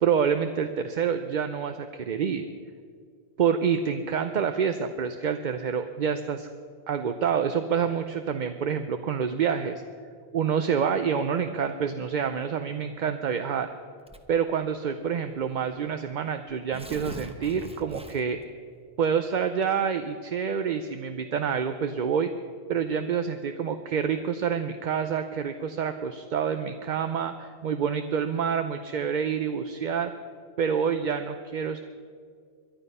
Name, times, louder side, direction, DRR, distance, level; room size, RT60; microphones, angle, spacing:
voice 1, 0.0-2.4 3.4-6.5 6.9-9.8 10.3-13.7 14.3-18.4 19.0-22.3 22.7-30.1 30.6-31.8, right 7 dB, 50° right, 8 dB, 0.7 m, -27 dB
Tearing, 14.1-14.5 15.3-15.4 15.7-15.8 16.5-18.4, right 1 dB, 5° right, 0.8 m, -42 dB
22.0 x 11.5 x 5.5 m, 2.1 s
omnidirectional pair, 1.1 m